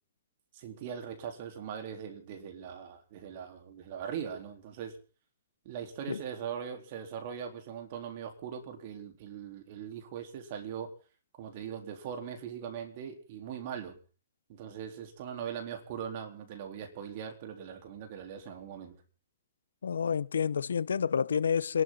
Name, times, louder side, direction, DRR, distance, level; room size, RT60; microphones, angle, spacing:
voice 1, 0.5-5.0 5.6-10.9 11.4-14.0 14.5-19.0, right 8 dB, 50° right, 3.8 m, -40 dB
voice 2, 19.8-21.8, left 7 dB, 85° left, 0.8 m, -29 dB
28.0 x 12.0 x 4.0 m
hypercardioid pair, 140°, 0 cm